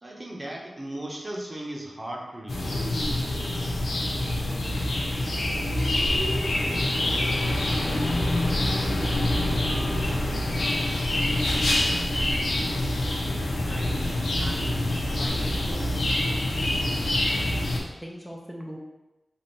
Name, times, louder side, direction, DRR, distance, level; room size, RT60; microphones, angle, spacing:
voice 1, 0.0-3.3, right 1 dB, 40° right, -2 dB, 0.9 m, -37 dB
sound 1, 2.5-17.8, left 1 dB, 85° left, 0.6 m, -26 dB
voice 2, 13.6-13.9 14.2-14.7 15.1-17.4 18.0-18.8, equal, 5° right, -2 dB, 0.6 m, -42 dB
3.5 x 2.7 x 4.0 m, 1.0 s
cardioid pair, 45°, 0 cm